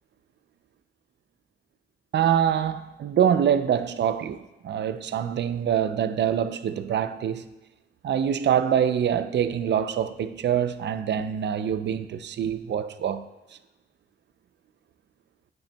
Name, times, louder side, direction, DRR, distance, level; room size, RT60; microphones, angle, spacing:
voice 1, 2.1-7.5 8.0-13.3, right 9 dB, 65° right, 0.5 m, -25 dB
8.8 x 8.7 x 2.2 m
cardioid pair, 85°, 20 cm